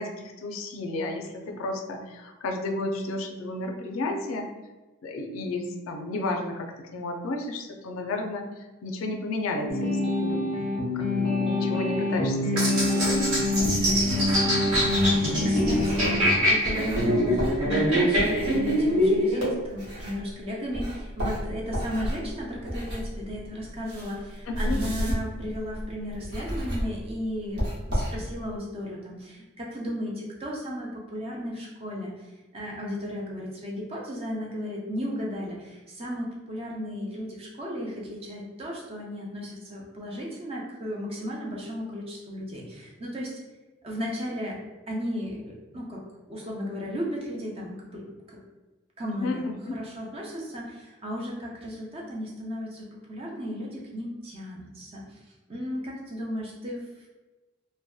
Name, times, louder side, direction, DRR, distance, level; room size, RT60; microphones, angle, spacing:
voice 1, 0.0-4.5 5.0-8.4 8.8-10.7 10.9-13.2 24.5-25.1 49.2-49.5, left 2 dB, 70° left, 3 dB, 0.4 m, -32 dB
sound 1, 9.7-16.2, left 2 dB, 25° left, 0.5 m, -26 dB
sound 2, 12.6-19.5, equal, 85° right, 1.0 m, -24 dB
sound 3, 13.1-20.4 20.7-28.6, equal, 55° right, 0.8 m, -33 dB
voice 2, 13.8-43.3 43.8-44.6 44.9-46.0 46.3-48.0 48.3-48.4 49.0-56.8, equal, 30° right, -3 dB, 0.5 m, -35 dB
2.6 x 2.1 x 2.3 m, 1.1 s
head